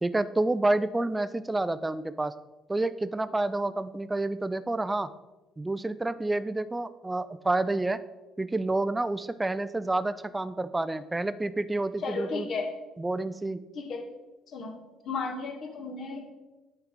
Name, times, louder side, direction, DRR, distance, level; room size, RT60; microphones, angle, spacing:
voice 1, 0.0-2.3 2.7-5.1 5.6-8.0 8.4-12.5 13.0-13.6, right 2 dB, 15° right, 14 dB, 0.4 m, -29 dB
voice 2, 12.0-12.7 13.7-14.1 14.5-14.8 15.0-16.3, left 4 dB, 50° left, 3 dB, 1.2 m, -34 dB
8.5 x 4.5 x 3.8 m, 1.1 s
figure-of-eight pair, 50°, 0 cm